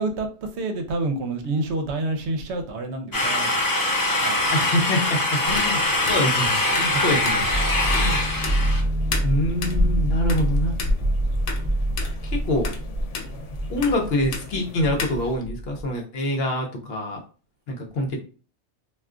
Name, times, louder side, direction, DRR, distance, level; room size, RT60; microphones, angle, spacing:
voice 1, 0.0-4.5 6.8-7.2, right 2 dB, 75° right, 6 dB, 0.8 m, -29 dB
sound 1, 3.1-8.8, left 2 dB, 30° left, 0.4 m, -23 dB
voice 2, 4.5-7.4 8.0-8.2 9.2-10.7 12.2-12.7 13.7-17.2 17.7-18.2, left 1 dB, 60° left, 2 dB, 0.9 m, -25 dB
sound 2, 5.4-15.3, left 2 dB, 90° left, 1.0 m, -32 dB
sound 3, 7.5-15.9, right 1 dB, 45° right, 0.7 m, -26 dB
2.4 x 2.3 x 3.6 m, 0.37 s
omnidirectional pair, 1.2 m